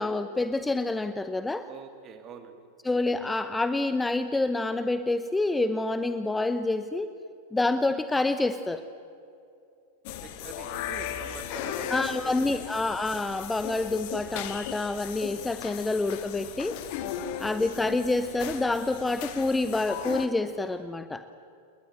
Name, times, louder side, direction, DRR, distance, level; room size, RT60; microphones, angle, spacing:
voice 1, 0.0-1.7 2.8-7.1 7.5-8.8 11.9-16.8 17.4-21.2, left 2 dB, 10° left, 11 dB, 0.9 m, -27 dB
voice 2, 1.7-2.6 10.1-12.6 17.4-17.6, right 6 dB, 30° right, 8 dB, 2.9 m, -45 dB
sound 1, 10.0-20.3, left 10 dB, 45° left, 1.9 m, -37 dB
29.0 x 21.0 x 7.9 m, 2.6 s
figure-of-eight pair, 90°, 0 cm